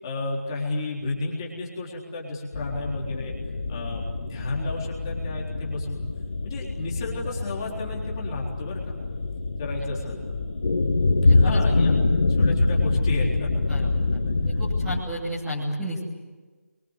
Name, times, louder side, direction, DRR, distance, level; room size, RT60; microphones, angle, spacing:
voice 1, 0.0-3.3 3.7-6.0 6.4-8.9 9.6-10.3 11.3-11.9 12.3-13.6 14.5-14.7, left 2 dB, 15° left, -3 dB, 3.8 m, -32 dB
sound 1, 2.5-15.0, left 3 dB, 50° left, 3.0 m, -25 dB
voice 2, 11.2-11.6 13.7-16.0, equal, 5° right, -11 dB, 3.0 m, -33 dB
27.5 x 24.0 x 8.2 m, 1.3 s
figure-of-eight pair, 175°, 8 cm